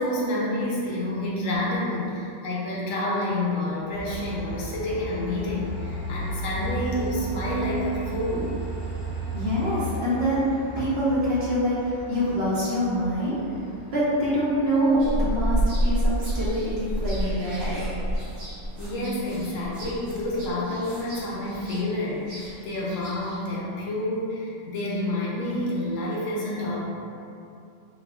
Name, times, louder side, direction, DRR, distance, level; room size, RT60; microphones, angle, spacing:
voice 1, 0.0-8.6 10.2-10.3 12.1-12.2 18.8-26.9, left 1 dB, 75° left, -5 dB, 1.0 m, -28 dB
Train, 3.9-19.0, right 1 dB, 40° left, 1.1 m, -36 dB
voice 2, 9.3-10.4 10.7-13.4 13.9-17.8, equal, 60° right, -9 dB, 0.8 m, -25 dB
sound 1, 15.0-23.4, equal, 85° right, 1.1 m, -29 dB
3.3 x 2.1 x 2.3 m, 2.6 s
omnidirectional pair, 1.4 m